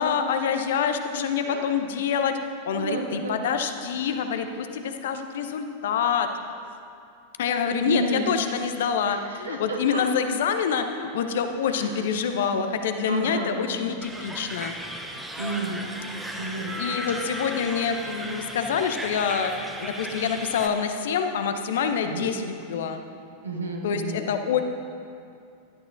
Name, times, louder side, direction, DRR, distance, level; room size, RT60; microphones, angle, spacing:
voice 1, 0.0-2.4 2.6-6.3 7.4-14.8 16.7-19.5 19.8-23.0 23.8-24.6, left 7 dB, 60° left, 7 dB, 0.8 m, -26 dB
voice 2, 2.8-3.4 7.8-8.3 9.1-10.0 11.7-11.9 13.1-13.7 15.4-15.8 16.4-16.8 17.2-17.5 22.0-22.3 23.4-24.3, right 2 dB, 75° right, 0 dB, 1.5 m, -31 dB
sound 1, 14.0-20.7, equal, 5° right, 1.1 m, -35 dB
16.5 x 11.5 x 2.6 m, 2.4 s
figure-of-eight pair, 90°, 0 cm